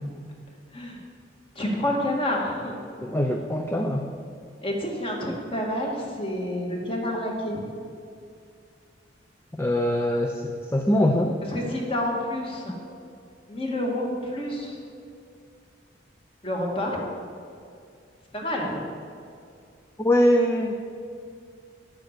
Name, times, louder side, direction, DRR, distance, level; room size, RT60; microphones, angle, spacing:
voice 1, 1.5-2.8 4.6-7.6 11.5-12.8 13.5-14.8 16.4-17.0 18.3-18.8, left 1 dB, 30° left, -1 dB, 1.8 m, -28 dB
voice 2, 3.0-4.1 9.6-11.4 20.0-20.8, left 1 dB, 15° left, 3 dB, 0.5 m, -23 dB
10.0 x 8.2 x 6.6 m, 2.3 s
head